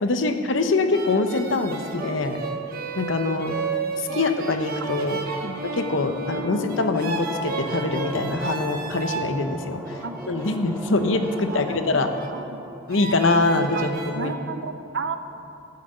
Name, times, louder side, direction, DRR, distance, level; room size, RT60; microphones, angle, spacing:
voice 1, 0.0-2.4 3.0-3.6 4.0-5.2 5.7-10.0 10.3-12.1 12.9-14.3, left 3 dB, 70° left, 7 dB, 0.8 m, -24 dB
sound 1, 0.9-9.3 9.9-12.4 12.9-14.1, right 3 dB, 50° right, 1.0 m, -33 dB
sound 2, 4.6-13.0, right 1 dB, 10° right, 0.4 m, -40 dB
voice 2, 11.4-11.8 12.3-12.6 13.7-13.9 14.2-15.2, right 4 dB, 65° right, 10 dB, 0.6 m, -33 dB
13.5 x 5.9 x 7.6 m, 2.7 s
head